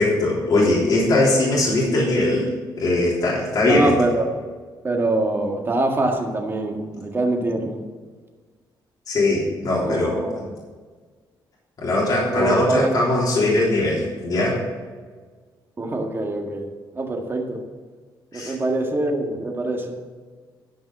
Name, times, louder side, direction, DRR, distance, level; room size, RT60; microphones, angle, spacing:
voice 1, 0.0-2.5 2.8-3.9 9.1-10.3 11.8-14.6 18.3-18.5, left 2 dB, 50° left, -6 dB, 3.5 m, -20 dB
voice 2, 3.7-4.4 4.8-7.8 9.8-10.5 12.4-12.9 13.4-13.5 15.8-16.7 16.9-17.6 18.3-20.0, right 2 dB, 25° right, 2 dB, 1.8 m, -24 dB
13.0 x 5.4 x 7.4 m, 1.5 s
cardioid pair, 110°, 8 cm